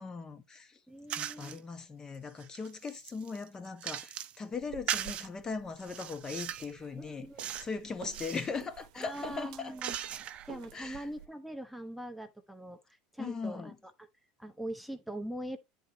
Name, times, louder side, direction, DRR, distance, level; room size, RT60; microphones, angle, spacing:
voice 1, 0.0-0.8 1.1-7.3 7.6-9.7 10.7-11.1 13.2-13.8, left 4 dB, 20° left, 1.2 m, -39 dB
voice 2, 0.9-1.6 7.0-7.5 8.9-10.0 10.5-13.7 14.4-15.6, right 1 dB, ahead, 0.9 m, -42 dB
sound 1, 1.1-1.6 2.1-4.4 4.9-5.3 5.8-6.7 7.4-7.7 8.0-8.5 9.1-10.5, right 10 dB, 35° right, 0.7 m, -39 dB
sound 2, 4.5-11.3, right 12 dB, 80° right, 0.7 m, -51 dB
9.9 x 4.0 x 4.3 m
supercardioid pair, 140°, 3 cm